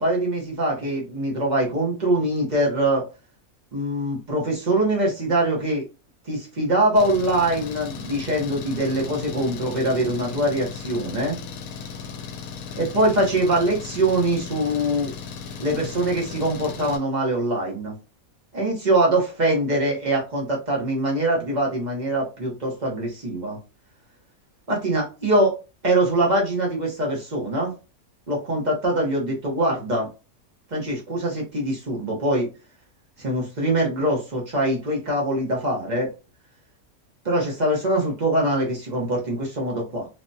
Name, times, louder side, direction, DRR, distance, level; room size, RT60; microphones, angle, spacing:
voice 1, 0.0-3.0 3.7-5.8 6.3-11.4 12.8-15.1 15.6-17.9 18.5-23.6 24.7-25.5 25.8-27.7 28.3-30.1 30.7-32.5 33.2-36.1 37.2-40.1, right 1 dB, 40° right, -2 dB, 0.8 m, -23 dB
Engine, 7.0-17.0, left 6 dB, 75° left, 1.0 m, -36 dB
3.2 x 2.1 x 2.6 m, 0.31 s
omnidirectional pair, 1.5 m